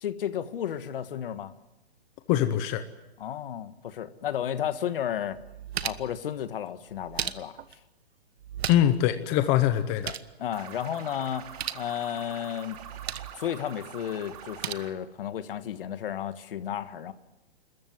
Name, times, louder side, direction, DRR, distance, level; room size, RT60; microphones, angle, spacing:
voice 1, 0.0-1.5 3.2-5.4 5.8-7.6 10.4-11.5 11.7-12.8 13.4-17.1, left 10 dB, 60° left, 12 dB, 1.6 m, -33 dB
voice 2, 2.3-2.8 8.7-10.2, left 12 dB, 20° left, 10 dB, 0.8 m, -23 dB
sound 1, 4.7-4.8 5.3-6.2 6.9-7.7 8.4-9.1 9.3-9.4 9.8-10.3 11.4-11.9 12.7-13.4 14.3-14.7, right 9 dB, 75° right, 1.3 m, -36 dB
sound 2, 10.5-14.9, right 8 dB, 35° right, 2.7 m, -45 dB
29.5 x 14.0 x 9.5 m, 0.97 s
hypercardioid pair, 160°, 32 cm